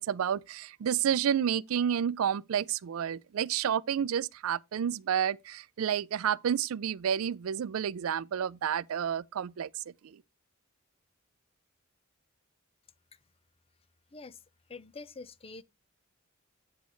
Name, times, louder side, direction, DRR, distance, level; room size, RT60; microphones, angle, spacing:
voice 1, 0.0-10.2, right 8 dB, 75° right, 0.4 m, -30 dB
voice 2, 14.1-14.4 14.7-15.6, left 3 dB, 30° left, 0.5 m, -46 dB
8.4 x 8.2 x 3.0 m
head